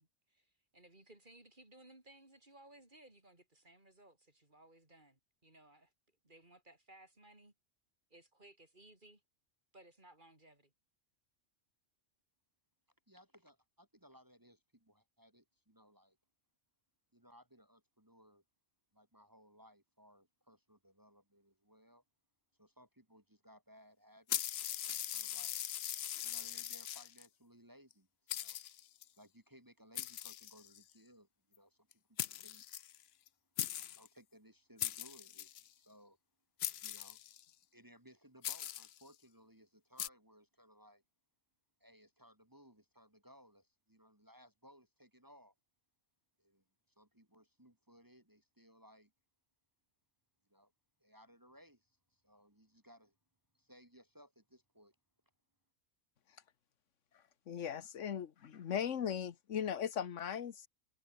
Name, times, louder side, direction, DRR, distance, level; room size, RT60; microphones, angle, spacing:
voice 1, 0.0-5.9 6.2-7.5 8.1-9.2 9.7-10.7, right 1 dB, 40° right, 4.2 m, -61 dB
voice 2, 13.1-16.2 17.1-18.4 18.9-22.0 22.6-25.6 26.2-28.6 29.1-32.7 33.9-36.2 36.8-37.2 37.7-41.0 41.8-45.5 46.4-46.6 47.0-49.1 50.5-50.7 51.0-53.2 53.5-55.0, equal, 15° right, 2.6 m, -63 dB
sound 1, 24.3-27.3 27.9-28.0 28.3-29.0 30.0-30.9 31.9-32.0 32.2-33.3 33.6-34.1 34.8-35.7 36.6-37.5 38.4-39.0 40.0-40.1, left 11 dB, 65° left, 0.8 m, -40 dB
voice 3, 57.5-60.7, left 8 dB, 85° left, 1.4 m, -38 dB
omnidirectional pair, 1.2 m